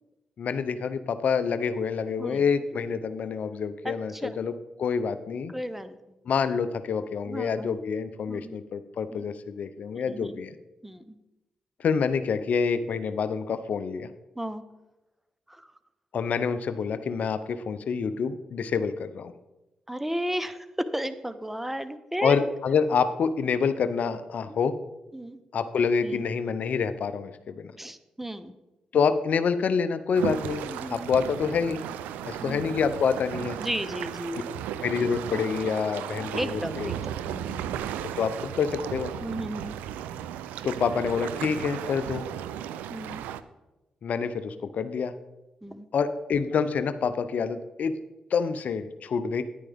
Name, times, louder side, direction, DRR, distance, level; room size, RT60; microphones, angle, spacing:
voice 1, 0.4-4.5 4.8-5.5 6.3-10.6 11.8-14.1 16.1-19.3 22.2-24.8 25.5-27.7 28.9-31.8 32.2-33.6 34.8-36.9 38.0-39.1 40.6-42.2 44.0-45.1 45.9-48.0 48.3-49.4, left 6 dB, 65° left, 11 dB, 0.6 m, -27 dB
voice 2, 3.8-4.4 5.5-6.0 7.3-7.7 8.3-8.5 9.1-9.3 10.1-10.4 10.8-11.1 14.4-14.6 15.5-15.7 19.9-22.4 24.5-24.6 25.1-25.4 26.0-26.2 27.8-28.5 30.7-31.1 32.4-32.6 33.6-34.6 36.2-37.9 39.2-39.8 42.9-43.2 45.6-45.9, equal, 10° right, 12 dB, 0.9 m, -34 dB
sound 1, 30.1-43.4, right 10 dB, 90° right, 0.4 m, -35 dB
10.0 x 9.7 x 3.5 m, 1.0 s
supercardioid pair, 45°, 3 cm